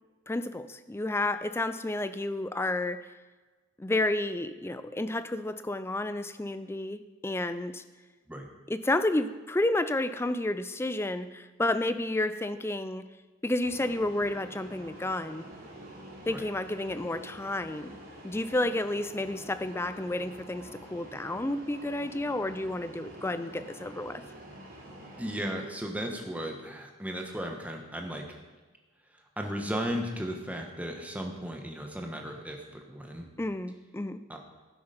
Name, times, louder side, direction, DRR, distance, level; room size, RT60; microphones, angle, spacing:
voice 1, 0.3-3.1 3.8-7.8 8.7-13.1 13.4-15.4 16.3-18.0 18.2-24.2 33.4-34.2, left 1 dB, 10° left, 12 dB, 0.4 m, -31 dB
sound 1, 13.6-25.5, right 1 dB, 45° right, 3.3 m, -47 dB
voice 2, 25.2-28.4 29.1-33.3 34.3-34.4, equal, 5° right, 2 dB, 1.3 m, -36 dB
12.0 x 9.7 x 5.2 m, 1.3 s
head